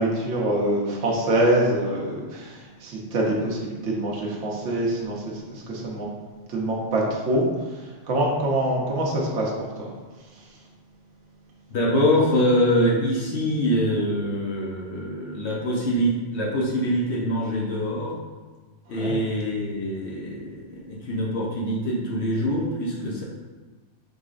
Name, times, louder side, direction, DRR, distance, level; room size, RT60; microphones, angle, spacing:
voice 1, 0.0-6.1 6.5-9.5 9.8-9.9 18.9-19.2, right 1 dB, 75° right, -3 dB, 1.1 m, -25 dB
voice 2, 11.7-18.1 18.9-23.2, equal, 65° left, -4 dB, 1.0 m, -24 dB
4.8 x 3.8 x 2.4 m, 1.4 s
omnidirectional pair, 1.3 m